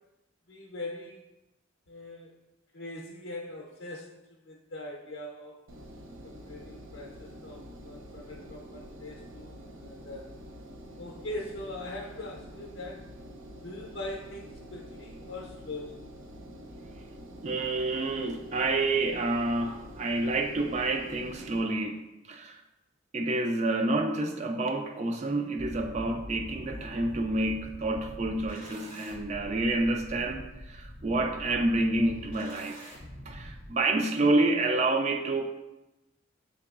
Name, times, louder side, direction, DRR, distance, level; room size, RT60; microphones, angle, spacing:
voice 1, 0.5-1.2 1.9-2.4 2.7-5.6 6.2-10.3 11.0-13.1 13.6-16.0, left 1 dB, 60° left, -3 dB, 0.6 m, -41 dB
Engine, 5.7-21.6, equal, 85° right, 0.5 m, -47 dB
voice 2, 17.4-22.0 22.3-22.6 23.1-32.8 33.3-35.5, right 2 dB, 35° right, 5 dB, 0.4 m, -28 dB
sound 1, 25.5-33.7, equal, 70° right, 1.3 m, -44 dB
5.7 x 3.8 x 2.4 m, 0.97 s
head